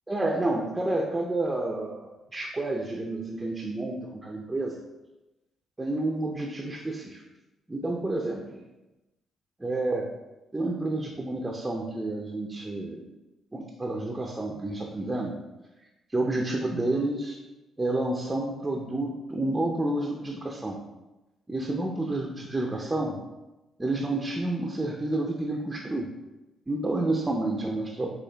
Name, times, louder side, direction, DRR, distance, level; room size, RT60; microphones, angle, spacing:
voice 1, 0.1-4.8 5.8-7.2 7.7-8.6 9.6-10.1 10.5-13.1 13.5-15.3 16.1-17.4 17.8-20.8 21.5-23.2 23.8-26.1 26.7-28.1, right 2 dB, 15° right, 0 dB, 0.6 m, -29 dB
6.3 x 2.5 x 3.3 m, 1.0 s
cardioid pair, 90°, 0 cm